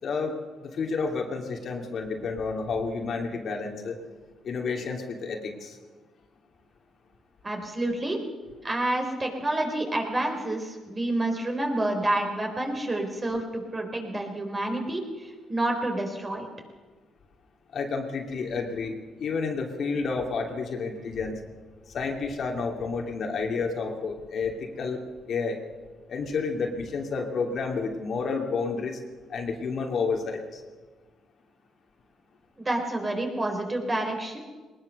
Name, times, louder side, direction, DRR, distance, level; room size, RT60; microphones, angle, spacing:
voice 1, 0.0-4.0 4.4-5.8 17.7-21.4 21.9-25.0 25.3-25.6 26.1-29.0 29.3-30.6, left 4 dB, 60° left, 2 dB, 2.8 m, -30 dB
voice 2, 7.4-8.2 8.6-16.5 32.6-34.4, right 1 dB, 25° right, 3 dB, 4.3 m, -29 dB
20.5 x 19.5 x 6.6 m, 1.3 s
cardioid pair, 90°, 0 cm